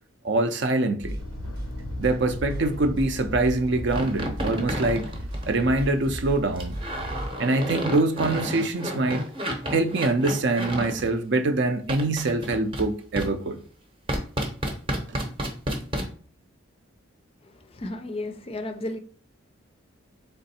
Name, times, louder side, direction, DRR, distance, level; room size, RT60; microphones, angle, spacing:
voice 1, 0.2-1.2 2.0-5.1 5.5-6.8 7.4-9.2 9.7-13.6 15.1-15.2, right 2 dB, 55° right, 0.5 m, -24 dB
sound 1, 1.0-7.3, equal, 85° right, 1.0 m, -35 dB
sound 2, 1.2-4.0, left 2 dB, 90° left, 0.5 m, -41 dB
sound 3, 3.9-5.9 6.6-11.1 11.9-12.9 13.2-13.3 14.1-16.1, equal, 25° right, 0.8 m, -30 dB
voice 2, 17.7-19.0, left 1 dB, 30° left, 0.4 m, -33 dB
3.7 x 3.4 x 4.1 m
head